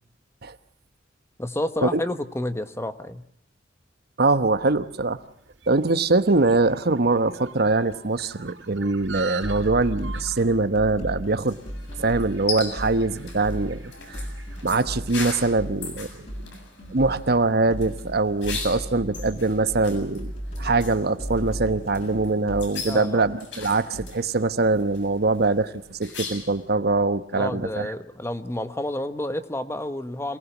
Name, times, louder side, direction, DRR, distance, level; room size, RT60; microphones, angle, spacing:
voice 1, 1.4-3.2 22.8-23.2 27.3-30.4, left 1 dB, 15° left, 10 dB, 1.2 m, -30 dB
voice 2, 4.2-5.2 5.7-11.6 12.0-13.8 14.1-14.2 14.6-16.2 16.9-20.3 20.6-25.7 26.0-27.9, right 3 dB, 55° right, 11 dB, 1.1 m, -23 dB
sound 1, 4.9-15.5, right 5 dB, 80° right, 4.6 m, -44 dB
sound 2, 9.4-24.2, equal, 35° left, 6.8 m, -36 dB
sound 3, 11.4-26.6, left 4 dB, 70° left, 7.7 m, -39 dB
27.5 x 19.0 x 7.2 m, 0.69 s
head